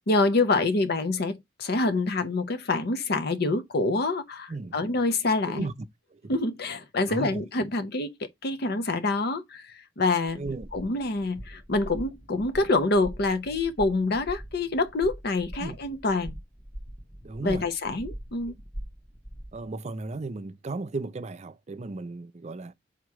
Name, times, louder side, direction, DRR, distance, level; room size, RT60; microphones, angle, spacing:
voice 1, 0.1-5.7 6.3-10.4 10.7-16.3 17.4-18.6, left 3 dB, 55° left, 0.7 m, -26 dB
voice 2, 7.1-7.4 10.4-10.7 15.6-15.8 17.2-17.7 19.5-22.7, right 3 dB, 35° right, 0.5 m, -35 dB
sound 1, 10.5-19.7, equal, 10° left, 0.8 m, -42 dB
7.1 x 3.0 x 4.6 m
head